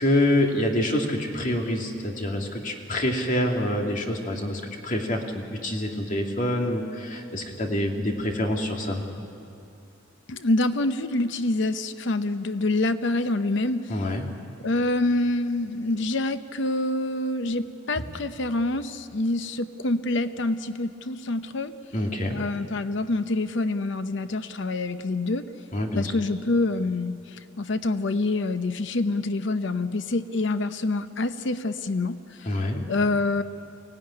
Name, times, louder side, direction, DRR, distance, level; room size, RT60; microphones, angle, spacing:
voice 1, 0.0-9.1 13.9-14.2 18.0-18.1 21.9-22.4 25.7-26.1 32.5-32.8, left 1 dB, 40° left, 1 dB, 2.4 m, -26 dB
voice 2, 10.3-13.9 14.6-21.7 22.3-25.4 26.0-32.6 32.9-33.4, left 2 dB, 65° left, 11 dB, 0.8 m, -26 dB
23.5 x 16.5 x 9.8 m, 2.6 s
head